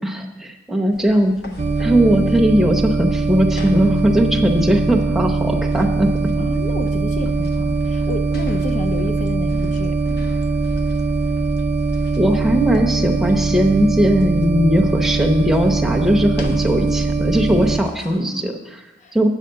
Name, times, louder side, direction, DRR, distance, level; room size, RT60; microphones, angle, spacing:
voice 1, 0.0-1.3 1.8-6.1 6.4-6.5 12.2-18.8 19.1-19.3, equal, ahead, 0 dB, 0.8 m, -18 dB
sound 1, 0.9-18.2, left 1 dB, 55° left, 1.1 m, -40 dB
sound 2, 1.6-17.8, right 3 dB, 35° right, 0.5 m, -21 dB
voice 2, 6.4-10.0 18.1-18.6 19.0-19.3, left 2 dB, 40° left, 7 dB, 0.5 m, -30 dB
8.4 x 5.7 x 6.5 m, 1.1 s
head